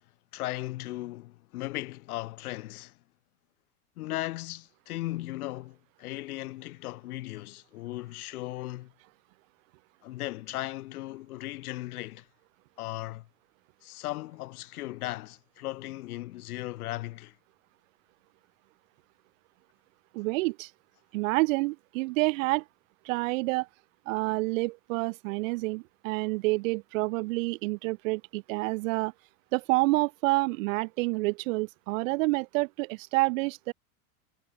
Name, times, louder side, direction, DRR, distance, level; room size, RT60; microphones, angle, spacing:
voice 1, 0.3-3.0 4.0-8.9 10.0-12.3 12.8-13.3 13.8-17.4, left 17 dB, 80° left, 0.7 m, -37 dB
voice 2, 20.1-20.7 21.1-22.6 23.0-23.7 24.1-29.1 29.5-33.7, right 24 dB, 60° right, 0.5 m, -28 dB
hypercardioid pair, 110°, 44 cm